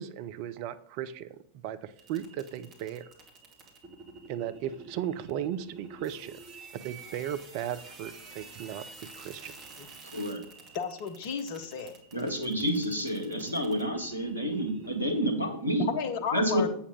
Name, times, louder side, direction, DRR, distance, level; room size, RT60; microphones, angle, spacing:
voice 1, 0.0-1.4 1.6-3.1 4.3-6.4 6.7-9.5, right 10 dB, 45° right, 13 dB, 0.6 m, -36 dB
sound 1, 2.0-15.3, right 3 dB, 30° right, 2.2 m, -49 dB
voice 2, 10.1-10.4 12.1-15.9 16.3-16.7, equal, 85° right, 6 dB, 1.3 m, -29 dB
voice 3, 10.7-12.0 15.8-16.7, left 6 dB, 50° left, 8 dB, 1.0 m, -33 dB
8.3 x 7.1 x 3.8 m, 0.66 s
figure-of-eight pair, 90°, 0 cm